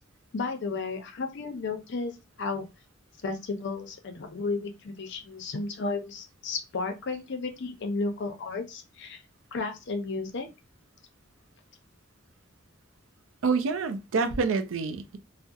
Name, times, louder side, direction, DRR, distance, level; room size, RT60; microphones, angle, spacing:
voice 1, 0.3-2.7 3.2-9.2 9.5-10.5, left 3 dB, 60° left, 0.5 m, -33 dB
voice 2, 13.4-15.2, right 4 dB, 70° right, 0.4 m, -27 dB
2.7 x 2.0 x 2.3 m
head